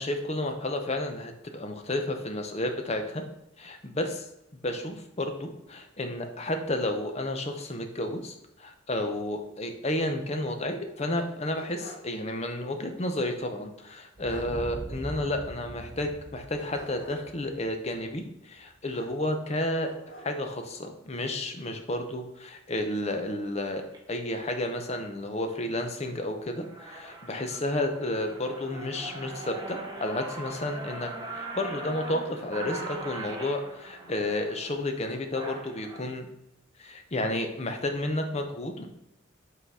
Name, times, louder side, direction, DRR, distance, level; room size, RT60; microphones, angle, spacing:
voice 1, 0.0-3.2 3.6-4.2 4.6-19.9 20.2-23.8 24.1-36.3 36.8-38.9, left 1 dB, 35° left, 5 dB, 0.8 m, -31 dB
sound 1, 11.1-12.2 12.5-12.6 13.9-14.0 14.2-14.6 16.7-17.4 18.9-19.5 19.8-20.6, left 1 dB, 65° left, 2.0 m, -48 dB
sound 2, 14.2-18.8, right 1 dB, 45° right, 0.9 m, -42 dB
sound 3, 23.8-24.0 24.6-24.9 25.4-25.8 26.2-26.3 26.6-36.0, right 2 dB, 20° right, 1.0 m, -41 dB
5.8 x 3.9 x 5.5 m, 0.82 s
head